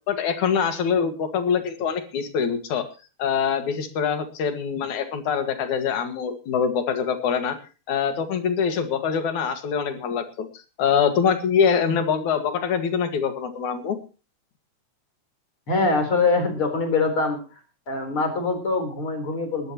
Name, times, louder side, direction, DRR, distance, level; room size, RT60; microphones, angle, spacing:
voice 1, 0.1-2.9 3.2-7.6 7.9-10.5 10.8-14.0, left 7 dB, 75° left, 8 dB, 3.3 m, -24 dB
voice 2, 15.7-17.4 17.9-19.7, left 3 dB, 45° left, 6 dB, 4.8 m, -23 dB
20.5 x 14.5 x 3.0 m, 0.35 s
omnidirectional pair, 3.4 m